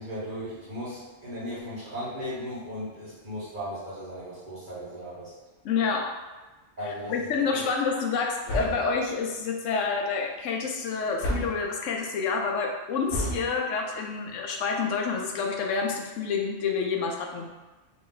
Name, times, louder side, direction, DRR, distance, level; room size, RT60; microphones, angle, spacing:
voice 1, 0.0-5.3 6.8-7.7, equal, 40° right, -9 dB, 1.7 m, -37 dB
voice 2, 5.6-6.1 6.8-17.5, left 5 dB, 80° left, 2 dB, 1.0 m, -28 dB
sound 1, 8.5-9.0 11.2-11.7 13.1-13.5, equal, 60° left, 1.1 m, -30 dB
3.2 x 2.9 x 3.8 m, 1.2 s
omnidirectional pair, 1.3 m